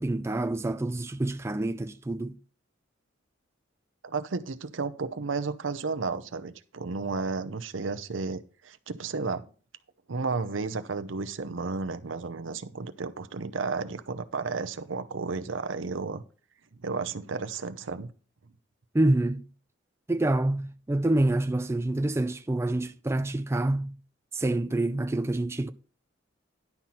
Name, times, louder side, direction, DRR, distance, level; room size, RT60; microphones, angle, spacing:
voice 1, 0.0-2.4 18.9-19.5 20.1-24.0 24.3-25.7, right 2 dB, 15° right, 0.3 m, -27 dB
voice 2, 4.0-9.5 10.1-16.2 16.8-18.1, right 4 dB, 80° right, 0.7 m, -33 dB
11.0 x 5.8 x 4.3 m
head